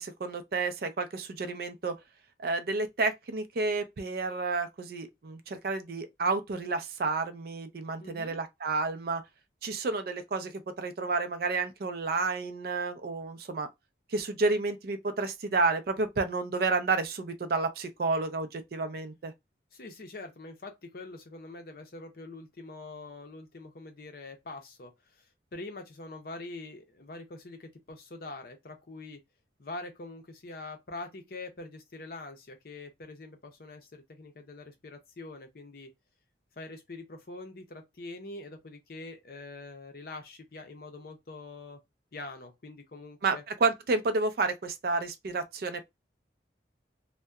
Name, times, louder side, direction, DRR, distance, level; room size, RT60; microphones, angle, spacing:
voice 1, 0.0-1.9 2.4-9.2 9.6-10.5 10.8-13.7 14.1-19.3 43.2-45.8, right 3 dB, 55° right, 0.4 m, -30 dB
voice 2, 8.0-8.4 19.7-29.2 29.6-35.9 36.6-41.8 42.1-43.4, left 2 dB, 55° left, 0.6 m, -44 dB
2.7 x 2.1 x 2.3 m
head